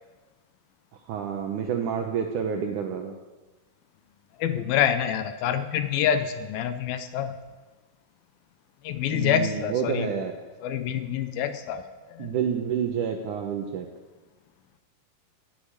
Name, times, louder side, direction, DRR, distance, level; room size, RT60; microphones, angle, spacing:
voice 1, 1.1-3.1 9.1-10.3 12.2-13.9, right 7 dB, 75° right, 4 dB, 1.9 m, -29 dB
voice 2, 4.4-7.3 8.8-10.2 10.6-12.3, left 9 dB, 80° left, 10 dB, 2.3 m, -27 dB
10.5 x 9.4 x 8.8 m, 1.2 s
omnidirectional pair, 4.6 m